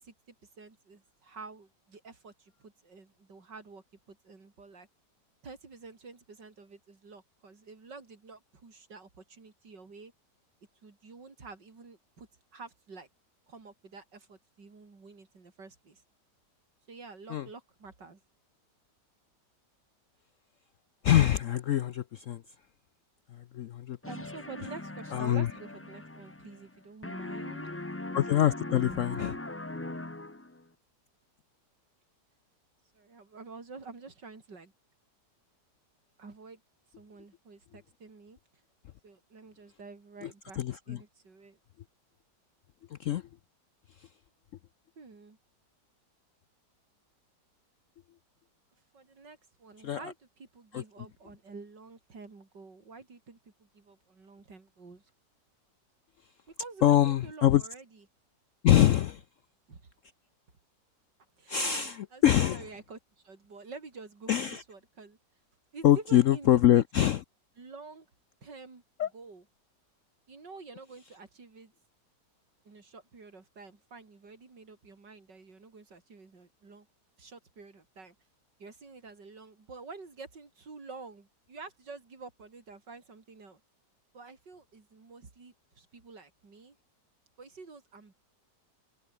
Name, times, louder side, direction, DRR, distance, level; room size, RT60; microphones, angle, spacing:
voice 1, 0.0-4.9 5.4-10.1 10.8-13.1 13.5-16.0 16.9-18.2 24.1-27.7 32.9-34.7 36.2-36.6 37.0-38.4 39.0-40.6 40.9-41.6 45.0-45.4 48.9-55.1 56.5-58.0 59.7-59.8 61.4-61.6 62.1-65.2 65.7-67.2 67.6-68.1 68.4-69.4 70.3-71.7 72.6-76.9 77.2-78.2 78.6-83.6 84.1-86.8 87.4-88.1, right 4 dB, 75° right, 4.3 m, -49 dB
voice 2, 21.0-22.4 23.3-24.0 25.1-25.5 28.1-29.4 40.2-40.3 40.6-41.0 42.9-43.2 49.8-50.0 50.7-50.8 56.8-57.6 58.6-59.2 61.5-62.6 64.3-64.6 65.8-67.2 69.0-69.1, left 11 dB, 70° left, 0.7 m, -24 dB
sound 1, 24.0-26.8 27.0-30.6, left 2 dB, 10° left, 0.6 m, -40 dB
open air
omnidirectional pair, 1.9 m